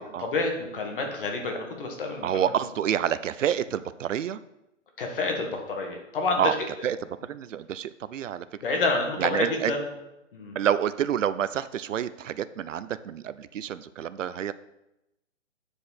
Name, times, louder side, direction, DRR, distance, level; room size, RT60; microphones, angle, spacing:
voice 1, 0.2-2.3 5.0-6.5 8.6-9.8 10.3-10.6, left 3 dB, 45° left, 2 dB, 1.5 m, -28 dB
voice 2, 2.2-4.4 6.4-7.0 7.2-8.5 9.2-9.7 10.5-14.5, right 9 dB, 75° right, 15 dB, 0.5 m, -28 dB
8.5 x 4.9 x 4.1 m, 0.91 s
hypercardioid pair, 165°, 38 cm